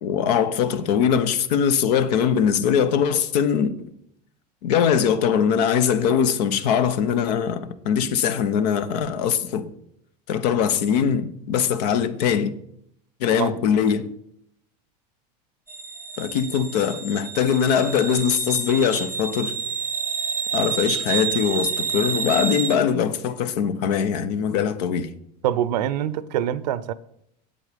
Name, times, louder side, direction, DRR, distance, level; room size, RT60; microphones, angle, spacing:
voice 1, 0.0-3.7 4.6-9.7 10.3-12.5 13.2-14.1 16.2-19.6 20.5-25.1, left 7 dB, 75° left, 1.0 m, -22 dB
sound 1, 15.7-22.7, right 7 dB, 10° right, 0.7 m, -29 dB
voice 2, 25.4-26.9, right 11 dB, 90° right, 0.7 m, -25 dB
8.5 x 7.9 x 5.2 m
supercardioid pair, 115°, 21 cm